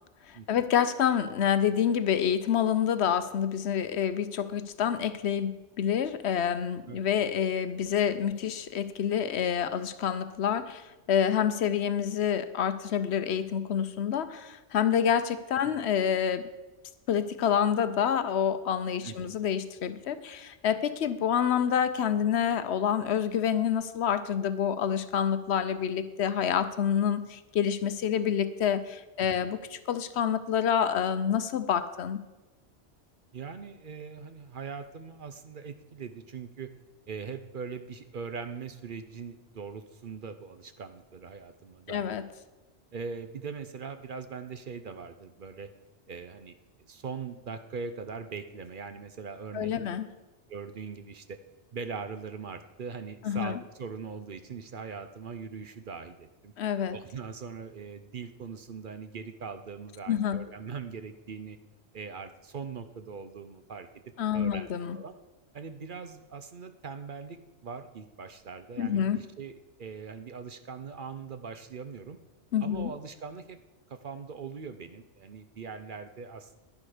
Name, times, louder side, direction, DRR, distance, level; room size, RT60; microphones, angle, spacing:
voice 1, 0.3-16.5 17.1-32.2 41.9-42.3 49.5-50.1 53.2-53.6 56.6-57.0 60.1-60.4 64.2-65.0 68.8-69.2 72.5-72.9, left 8 dB, 70° left, 12 dB, 0.9 m, -27 dB
voice 2, 19.0-19.4 29.3-29.5 33.3-36.7 37.1-42.2 42.9-45.7 46.1-46.6 46.9-49.7 50.5-51.4 51.7-56.5 56.9-61.6 61.9-63.9 64.3-64.7 64.9-65.1 65.5-69.1 69.4-72.2 72.6-73.6 73.9-76.6, right 5 dB, 50° right, 9 dB, 0.8 m, -41 dB
11.0 x 10.5 x 4.9 m, 1.1 s
omnidirectional pair, 1.2 m